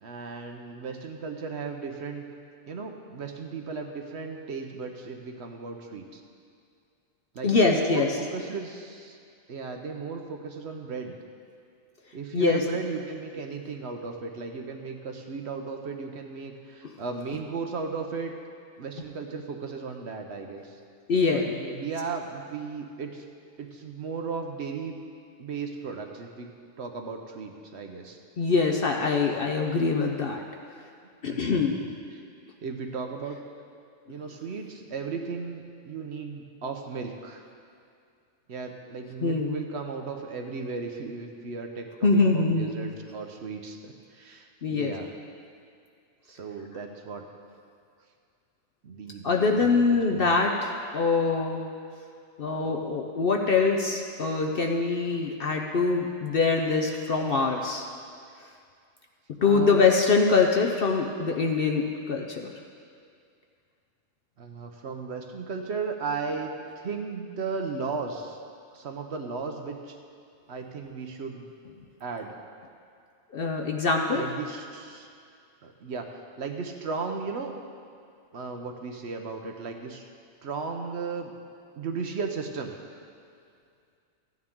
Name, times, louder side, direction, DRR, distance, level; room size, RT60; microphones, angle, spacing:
voice 1, 0.0-2.3 2.7-6.2 7.3-9.2 9.5-11.1 12.1-18.3 18.8-20.8 21.3-23.2 23.6-25.0 25.4-26.5 26.8-28.2 31.2-32.2 32.6-33.4 34.1-37.4 38.5-45.1 46.3-47.2 48.8-50.4 59.4-59.9 64.4-68.4 68.7-70.0 70.5-71.5 72.0-72.4 74.1-75.1 75.6-77.5 78.3-80.0 80.4-81.3 81.8-82.7, right 4 dB, 60° right, 4 dB, 0.9 m, -36 dB
voice 2, 7.4-8.1 12.3-12.6 21.1-21.5 28.4-30.4 31.2-31.7 39.2-39.5 42.0-42.7 44.6-44.9 49.2-51.6 52.4-57.9 59.4-62.5 73.3-74.2, left 4 dB, 55° left, 2 dB, 0.7 m, -24 dB
14.0 x 9.6 x 3.7 m, 2.3 s
omnidirectional pair, 1.4 m